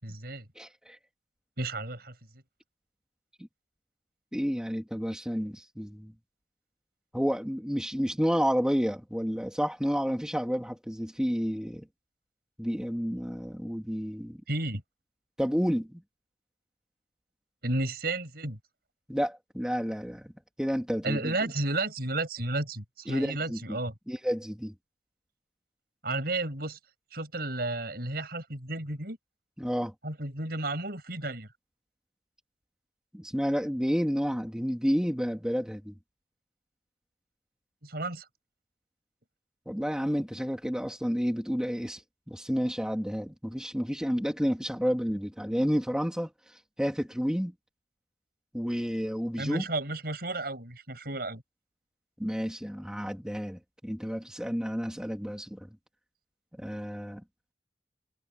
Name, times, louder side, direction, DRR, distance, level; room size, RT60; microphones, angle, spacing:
voice 1, 0.0-0.5 1.6-2.1 14.5-14.8 17.6-18.6 21.0-23.9 26.0-26.8 27.1-29.2 30.0-31.5 37.8-38.2 49.4-51.4, right 2 dB, 60° right, 7.0 m, -32 dB
voice 2, 0.5-1.0 4.3-6.1 7.1-11.9 12.6-14.4 15.4-16.0 19.1-20.3 20.6-21.3 23.1-23.8 24.1-24.7 29.6-29.9 33.1-35.9 39.6-42.0 42.3-46.3 46.8-47.5 48.5-49.7 52.2-55.7 56.6-57.2, equal, 5° right, 3.4 m, -30 dB
head